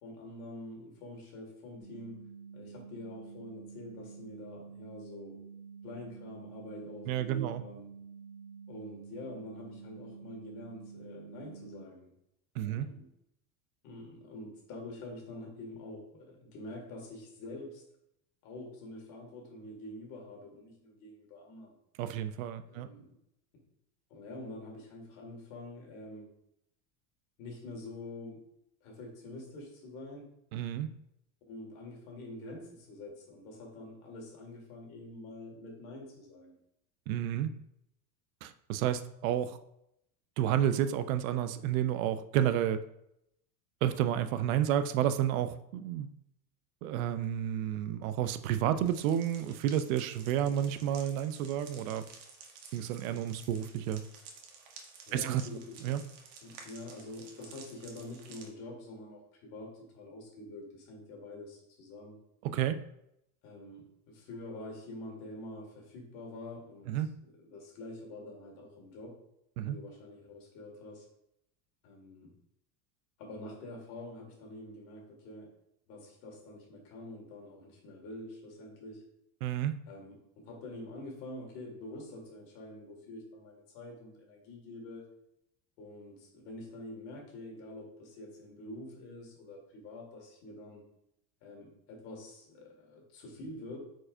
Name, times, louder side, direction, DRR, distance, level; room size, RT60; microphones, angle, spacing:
voice 1, 0.0-2.2 2.5-5.4 5.8-7.9 8.7-12.1 12.6-13.1 13.8-17.8 18.4-21.7 22.7-23.1 23.5-23.7 24.1-26.3 27.4-28.4 28.8-30.3 31.5-36.5 55.1-55.9 56.4-62.2 63.4-66.9 67.2-69.2 69.6-71.1 71.8-72.3 73.2-75.5 75.9-79.1 79.9-85.1 85.8-90.8 91.4-93.8, left 1 dB, 50° left, 0 dB, 2.0 m, -46 dB
sound 1, 1.8-11.8, right 6 dB, 30° left, 2.0 m, -49 dB
voice 2, 7.1-7.6 12.6-12.9 22.0-22.9 30.5-30.9 37.1-37.5 38.4-39.6 40.4-42.8 43.8-46.1 46.8-52.0 52.7-54.0 55.1-55.4 55.8-56.0 62.4-62.8 66.9-67.1 69.6-69.8 79.4-79.8, right 10 dB, 75° right, 11 dB, 0.6 m, -30 dB
sound 2, 48.9-58.5, right 5 dB, 60° right, 1.3 m, -53 dB
8.5 x 4.7 x 2.6 m, 0.79 s
cardioid pair, 175°, 42 cm